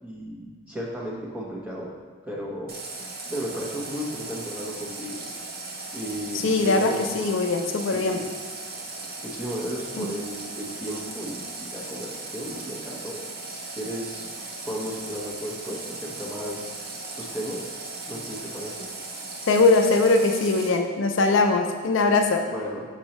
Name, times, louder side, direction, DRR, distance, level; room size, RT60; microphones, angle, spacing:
voice 1, 0.0-1.9 2.2-2.7 3.3-5.2 5.9-7.4 7.8-8.3 9.2-13.2 13.5-14.3 14.6-16.7 17.0-17.7 18.1-18.8 22.5-22.8, equal, 5° right, -5 dB, 0.9 m, -34 dB
Water tap faucet, 2.7-20.7, right 3 dB, 45° right, 0.7 m, -37 dB
voice 2, 6.3-8.2 10.0-10.1 19.5-22.4, left 3 dB, 65° left, 4 dB, 0.4 m, -21 dB
6.3 x 5.4 x 3.0 m, 1.5 s
head